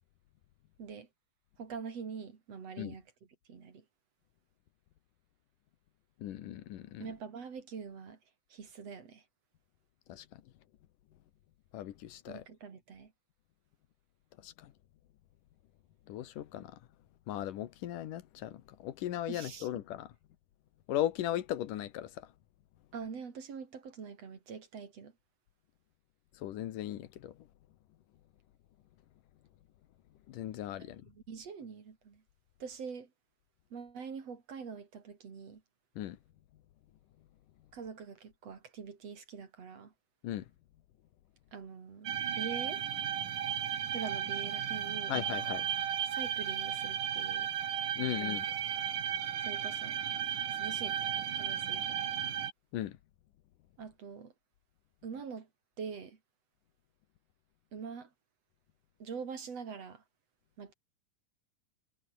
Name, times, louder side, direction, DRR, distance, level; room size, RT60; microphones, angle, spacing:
voice 1, 1.6-3.1 3.5-3.8 7.0-8.2 8.5-9.2 12.3-13.1 19.3-19.7 22.9-25.1 30.8-32.2 32.6-33.1 33.7-35.6 37.7-39.9 41.5-42.8 43.9-45.2 46.1-47.5 48.0-48.2 49.4-50.0 50.5-52.2 53.8-54.3 55.0-55.5 55.8-56.2 57.7-58.1 59.0-60.0 60.6-60.7, right 6 dB, 50° right, 3.9 m, -44 dB
voice 2, 6.2-7.1 10.1-10.3 11.7-12.4 14.4-14.7 16.1-16.8 17.3-20.1 20.9-22.3 26.4-27.3 30.3-31.0 36.0-36.2 40.2-40.5 45.1-45.7 48.0-48.5 52.7-53.0, left 12 dB, 90° left, 2.9 m, -37 dB
sound 1, 42.1-52.5, right 9 dB, 85° right, 3.7 m, -34 dB
omnidirectional pair, 3.6 m